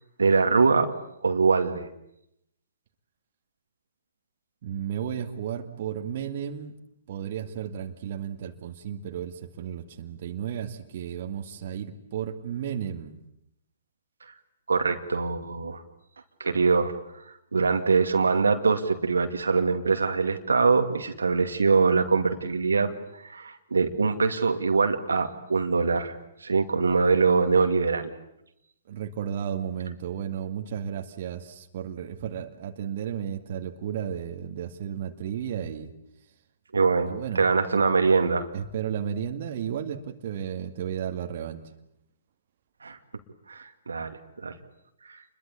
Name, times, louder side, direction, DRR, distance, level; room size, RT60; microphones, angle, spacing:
voice 1, 0.2-0.9 1.2-1.9 14.7-15.8 16.4-16.9 17.5-22.9 23.2-28.1 36.7-38.5 42.8-43.0 43.5-44.2 44.4-44.6, right 4 dB, 80° right, 6 dB, 2.3 m, -23 dB
voice 2, 4.6-6.7 7.1-13.2 28.9-35.9 37.1-37.4 38.5-41.6, right 9 dB, 50° right, 5 dB, 2.2 m, -33 dB
28.5 x 22.0 x 8.4 m, 0.80 s
figure-of-eight pair, 125°, 0 cm